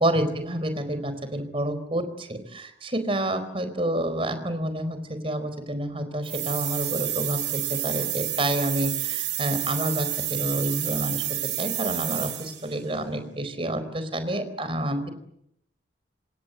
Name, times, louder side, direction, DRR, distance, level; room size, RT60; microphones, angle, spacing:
voice 1, 0.0-11.2 11.6-15.1, right 1 dB, 30° right, 11 dB, 4.5 m, -28 dB
sound 1, 6.2-12.7, right 14 dB, 75° right, 5.0 m, -29 dB
27.5 x 26.5 x 8.1 m, 0.76 s
head